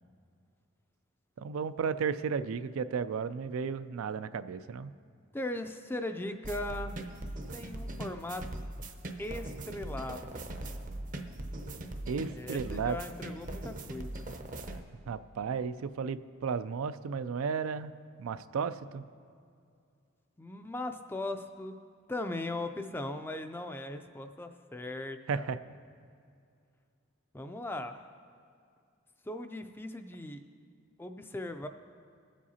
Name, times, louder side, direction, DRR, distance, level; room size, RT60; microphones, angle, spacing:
voice 1, 1.4-4.9 12.1-13.0 15.1-17.9 18.2-19.0 25.3-25.6, right 6 dB, 85° right, 13 dB, 0.4 m, -34 dB
voice 2, 5.3-7.0 7.5-8.6 9.2-10.4 12.3-14.3 20.4-21.7 22.1-25.5 27.3-28.1 29.2-30.4 31.0-31.7, left 2 dB, 10° left, 7 dB, 0.3 m, -39 dB
sound 1, 6.4-14.8, right 1 dB, 40° right, 0.6 m, -40 dB
21.5 x 7.5 x 2.8 m, 2.3 s
head